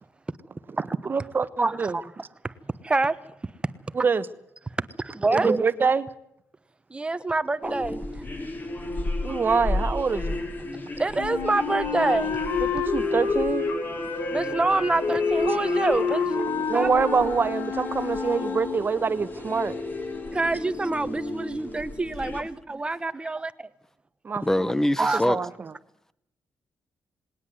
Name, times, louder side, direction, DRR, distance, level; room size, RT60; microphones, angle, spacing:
voice 1, 1.0-2.0 3.9-4.3 5.3-6.1 9.2-10.4 12.6-13.7 16.7-19.8 24.2-24.4 25.0-25.5, right 5 dB, 35° right, 1.3 m, -25 dB
voice 2, 1.6-2.0 2.4-2.5 2.8-3.2 4.8-5.6 6.9-8.2 11.0-12.4 14.3-16.3 16.7-16.9 20.3-23.7 25.0-25.2, right 3 dB, 15° right, 1.1 m, -26 dB
sound 1, 7.6-22.4, left 2 dB, 30° left, 4.6 m, -33 dB
Wind instrument woodwind instrument, 11.1-18.9, left 6 dB, 85° left, 5.0 m, -29 dB
voice 3, 24.4-25.4, left 1 dB, 10° left, 0.9 m, -23 dB
19.5 x 19.0 x 7.8 m
cardioid pair, 130°, 6 cm